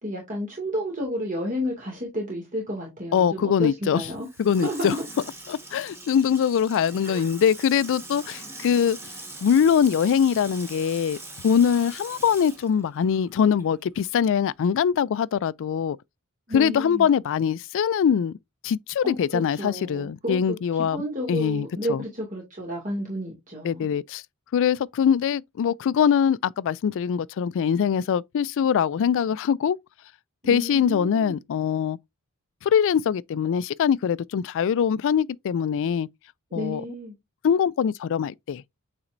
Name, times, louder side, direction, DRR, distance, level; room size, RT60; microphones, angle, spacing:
voice 1, 0.0-4.3 4.6-5.0 7.0-7.3 16.5-17.1 19.0-23.9 30.4-31.4 36.5-37.1, equal, 35° right, 2.3 m, -31 dB
voice 2, 3.1-4.0 4.4-4.9 5.5-9.0 9.4-11.2 11.4-16.0 16.5-18.4 18.6-21.0 21.3-22.0 23.6-24.2 24.5-29.8 30.5-32.0 32.6-36.1 36.5-36.8 37.4-38.6, left 7 dB, 60° left, 0.3 m, -23 dB
Water tap faucet / Sink (filling or washing), 4.1-13.8 14.1-14.2, right 2 dB, 10° right, 1.9 m, -42 dB
8.7 x 4.2 x 2.6 m
head